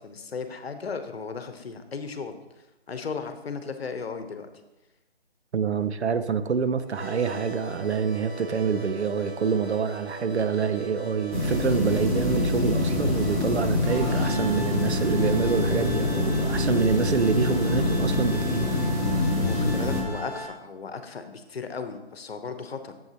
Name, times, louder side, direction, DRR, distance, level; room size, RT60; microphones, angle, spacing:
voice 1, 0.0-2.4 2.9-4.5 19.4-22.9, left 5 dB, 70° left, 8 dB, 0.9 m, -35 dB
voice 2, 5.5-18.7, right 6 dB, 85° right, 11 dB, 0.6 m, -26 dB
sound 1, 6.8-20.5, right 1 dB, 35° right, 2.1 m, -39 dB
sound 2, 11.3-20.0, left 2 dB, 15° right, 0.6 m, -25 dB
8.0 x 7.2 x 2.9 m, 1.0 s
figure-of-eight pair, 155°, 32 cm